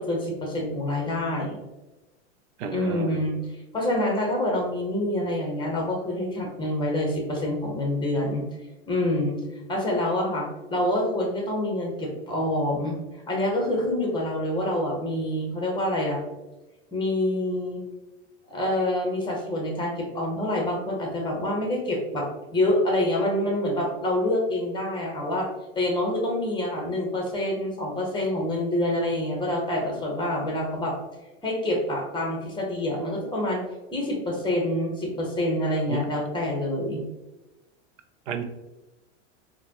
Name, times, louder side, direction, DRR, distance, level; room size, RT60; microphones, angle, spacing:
voice 1, 0.0-1.6 2.7-3.4 3.7-8.4 8.9-9.4 9.7-13.0 13.3-16.2 16.9-17.8 18.5-22.3 22.5-25.5 25.7-30.9 31.4-33.6 33.9-37.0, left 1 dB, 15° left, 0 dB, 1.1 m, -26 dB
voice 2, 2.6-3.2 35.9-36.1 38.3-38.4, right 5 dB, 80° right, 8 dB, 0.6 m, -31 dB
3.9 x 2.3 x 2.9 m, 1.0 s
hypercardioid pair, 110°, 36 cm